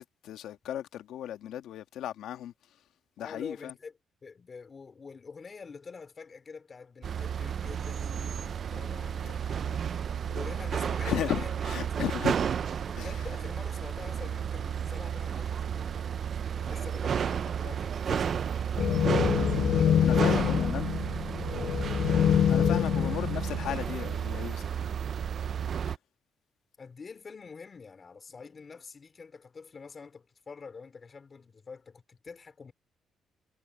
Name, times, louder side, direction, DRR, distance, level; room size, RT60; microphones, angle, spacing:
voice 1, 0.0-2.8 3.2-3.7 9.4-9.8 11.0-12.4 13.0-13.3 20.0-20.9 22.5-24.7 25.8-25.9, left 11 dB, 80° left, 1.7 m, -36 dB
voice 2, 3.2-3.9 4.2-10.0 10.3-11.5 12.0-12.1 12.9-16.3 16.5-18.7 19.6-20.5 22.8-22.9 23.8-24.1 26.8-32.7, left 5 dB, 30° left, 3.8 m, -46 dB
sound 1, 7.0-26.0, right 8 dB, 45° right, 0.6 m, -32 dB
sound 2, 18.8-23.9, left 9 dB, 60° left, 0.4 m, -26 dB
cardioid pair, 145°, 0 cm